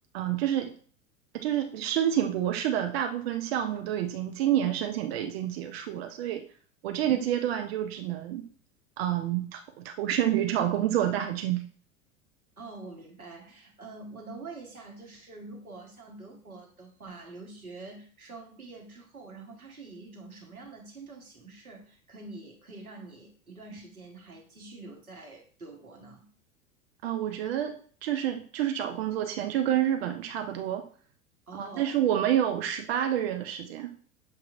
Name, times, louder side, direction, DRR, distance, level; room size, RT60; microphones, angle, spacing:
voice 1, 0.1-0.7 1.3-6.4 6.8-8.4 9.0-11.6 27.0-27.8 28.0-30.8 31.5-33.9, right 11 dB, 45° right, 6 dB, 0.6 m, -28 dB
voice 2, 12.6-26.3 31.5-32.0, right 3 dB, 85° right, 1 dB, 1.2 m, -46 dB
7.1 x 3.0 x 2.4 m, 0.44 s
figure-of-eight pair, 85°, 42 cm